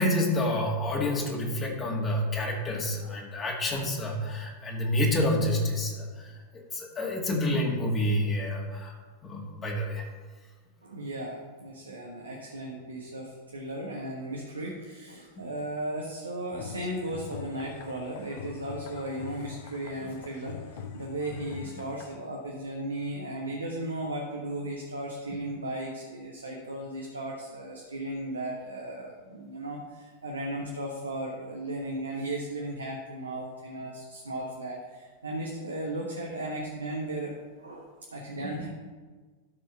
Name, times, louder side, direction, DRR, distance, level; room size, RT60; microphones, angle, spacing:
voice 1, 0.0-8.9 9.2-10.1 38.4-38.5, left 1 dB, 25° left, -1 dB, 2.0 m, -28 dB
voice 2, 10.8-38.7, right 1 dB, 75° right, -1 dB, 1.2 m, -36 dB
sound 1, 16.5-22.2, left 6 dB, 50° left, 0.8 m, -43 dB
13.0 x 4.6 x 5.6 m, 1.4 s
figure-of-eight pair, 90°, 0 cm